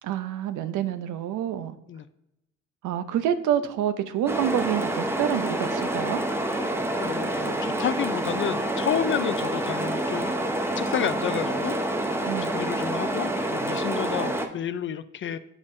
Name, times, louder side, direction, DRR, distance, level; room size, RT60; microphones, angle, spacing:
voice 1, 0.0-1.8 2.8-6.2 12.3-12.5, right 10 dB, 80° right, 11 dB, 0.6 m, -27 dB
sound 1, 4.3-14.5, right 1 dB, 10° right, 0.7 m, -27 dB
voice 2, 7.0-10.4 10.8-11.8 12.5-15.4, left 9 dB, 40° left, 14 dB, 0.4 m, -30 dB
8.2 x 5.3 x 2.6 m, 0.87 s
cardioid pair, 90°, 30 cm